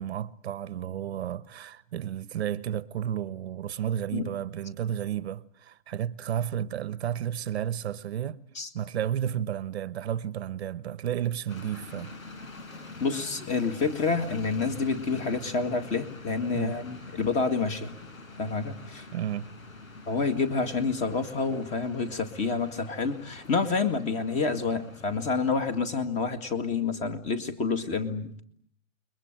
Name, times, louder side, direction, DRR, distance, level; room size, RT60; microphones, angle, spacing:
voice 1, 0.0-8.4 8.7-12.2 16.5-16.8 19.1-19.5, right 10 dB, 50° right, 1.1 m, -32 dB
sound 1, 11.5-25.8, left 3 dB, 90° left, 5.9 m, -45 dB
voice 2, 13.0-18.0 18.4-19.1 20.1-28.4, left 4 dB, 15° left, 2.0 m, -28 dB
29.0 x 22.0 x 9.0 m
hypercardioid pair, 150°, 40 cm